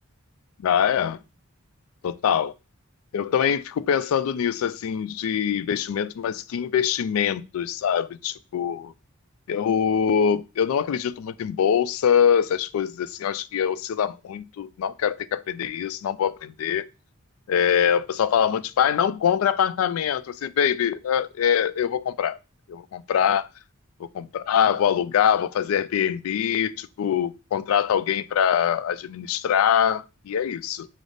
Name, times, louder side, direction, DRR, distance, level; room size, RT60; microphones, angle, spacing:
voice 1, 0.6-1.2 2.0-2.5 3.1-8.9 9.5-16.9 17.5-22.4 22.7-23.5 24.2-30.9, left 8 dB, 85° left, 0.3 m, -23 dB
4.9 x 2.0 x 3.9 m
head